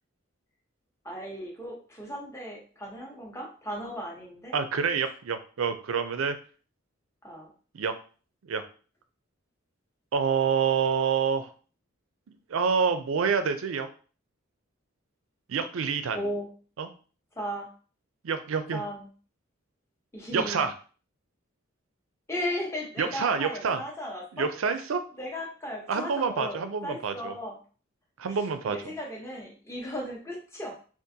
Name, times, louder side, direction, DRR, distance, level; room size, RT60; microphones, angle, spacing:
voice 1, 1.0-4.5 7.2-7.5 16.1-16.5 17.4-17.7 18.7-19.1 20.1-20.6 22.3-24.5 25.2-27.6 28.3-28.4 28.7-30.8, equal, 15° left, -1 dB, 0.8 m, -36 dB
voice 2, 4.5-6.4 7.7-7.9 8.5-8.6 10.1-11.5 12.5-13.9 15.5-16.3 16.8-16.9 18.2-18.8 20.3-20.7 23.0-23.8 24.3-25.0 25.9-27.3 28.2-28.9, right 6 dB, 75° right, 9 dB, 0.4 m, -27 dB
3.7 x 2.5 x 2.7 m, 0.39 s
head